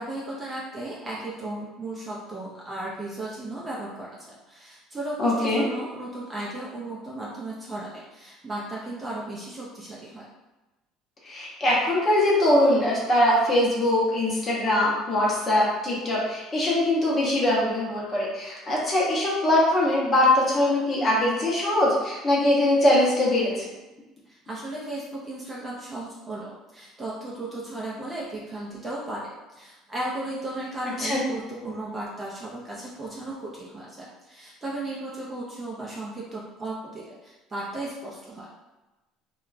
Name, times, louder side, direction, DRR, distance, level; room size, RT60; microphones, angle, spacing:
voice 1, 0.0-10.3 24.3-38.5, right 2 dB, 15° right, -5 dB, 0.4 m, -35 dB
voice 2, 5.2-5.6 11.2-23.7 31.0-31.2, left 1 dB, 25° left, -5 dB, 0.7 m, -22 dB
2.9 x 2.2 x 2.4 m, 1.1 s
cardioid pair, 160°, 0 cm